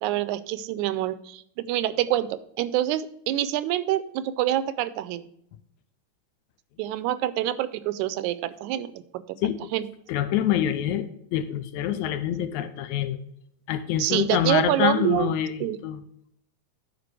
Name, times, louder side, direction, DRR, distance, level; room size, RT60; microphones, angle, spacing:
voice 1, 0.0-5.2 6.8-9.2 9.7-9.9 14.0-15.3 15.6-15.8, right 13 dB, 85° right, 15 dB, 2.0 m, -26 dB
voice 2, 10.1-13.2 13.7-16.0, left 10 dB, 80° left, 11 dB, 2.0 m, -26 dB
11.0 x 4.7 x 4.7 m, 0.71 s
omnidirectional pair, 3.4 m